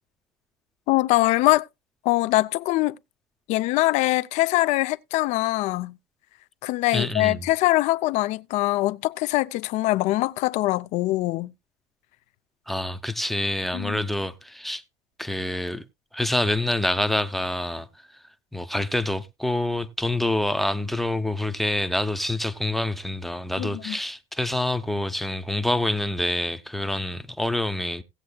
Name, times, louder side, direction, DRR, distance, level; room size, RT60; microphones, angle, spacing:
voice 1, 0.9-1.7 2.0-3.0 3.5-5.9 6.6-11.5 13.7-14.0 23.6-24.0, left 18 dB, 55° left, 0.5 m, -23 dB
voice 2, 6.9-7.5 12.7-14.8 15.2-15.8 16.1-17.9 18.5-28.0, left 1 dB, ahead, 0.7 m, -26 dB
17.5 x 7.5 x 2.3 m
cardioid pair, 150°, 15 cm